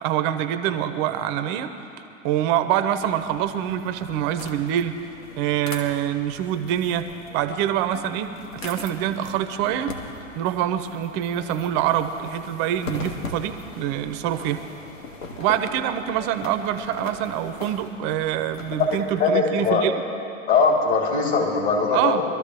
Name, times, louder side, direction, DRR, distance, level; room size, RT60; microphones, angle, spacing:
voice 1, 0.0-1.7 2.2-5.0 5.4-7.1 7.3-10.0 10.4-14.6 15.4-19.9 21.9-22.2, right 11 dB, 30° right, 9 dB, 0.6 m, -25 dB
sound 1, 2.9-19.2, left 3 dB, 75° left, 1.8 m, -40 dB
voice 2, 19.2-19.8 20.5-22.2, left 4 dB, 45° left, -2 dB, 3.6 m, -20 dB
23.0 x 13.5 x 3.3 m, 2.7 s
hypercardioid pair, 125°, 40 cm